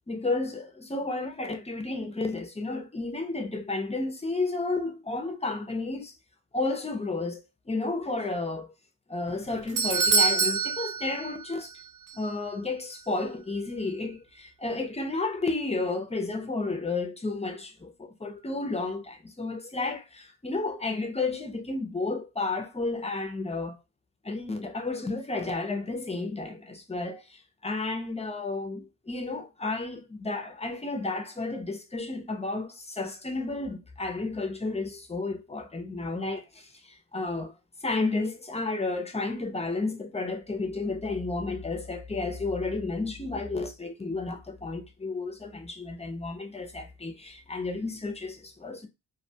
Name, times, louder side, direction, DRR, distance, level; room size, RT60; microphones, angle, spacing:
voice 1, 0.1-6.1 6.5-7.4 7.7-8.7 9.1-11.7 12.1-23.8 24.2-37.5 37.8-48.9, left 3 dB, 15° left, 0.3 m, -32 dB
Doorbell, 9.3-11.8 12.1-12.2 12.9-13.0, right 5 dB, 45° right, 0.5 m, -26 dB
2.4 x 2.1 x 2.6 m
wide cardioid pair, 130°, 45 cm